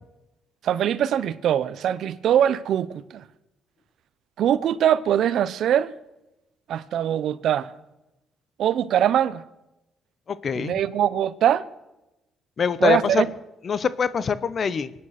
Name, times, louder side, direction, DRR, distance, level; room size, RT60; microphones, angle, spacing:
voice 1, 0.6-3.2 4.4-5.9 6.7-7.7 8.6-9.4 10.5-11.7 12.8-13.3, right 10 dB, 75° right, 0.7 m, -22 dB
voice 2, 10.3-10.7 12.6-13.2 13.6-14.9, left 6 dB, 50° left, 0.9 m, -24 dB
24.5 x 9.6 x 5.9 m
cardioid pair, 90°, 0 cm